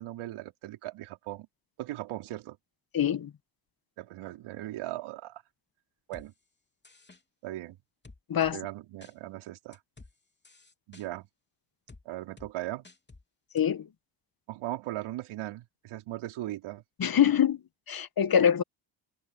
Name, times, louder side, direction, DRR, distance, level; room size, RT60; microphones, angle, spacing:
voice 1, 0.0-1.5 1.8-2.6 4.0-5.4 6.1-6.3 7.4-7.8 8.5-9.8 10.9-11.3 12.0-12.8 14.5-16.8, right 15 dB, 85° right, 4.8 m, -38 dB
voice 2, 2.9-3.3 8.3-8.6 13.5-13.9 17.0-17.6 17.9-18.6, left 9 dB, 45° left, 1.6 m, -24 dB
sound 1, 6.1-6.3 6.8-7.2 8.0-8.5 9.0-9.1 9.7-10.1 10.4-11.1 11.9-12.0 12.4-12.5 12.8-13.2 13.6-13.7, left 3 dB, 20° left, 3.5 m, -52 dB
open air
supercardioid pair, 60°, 48 cm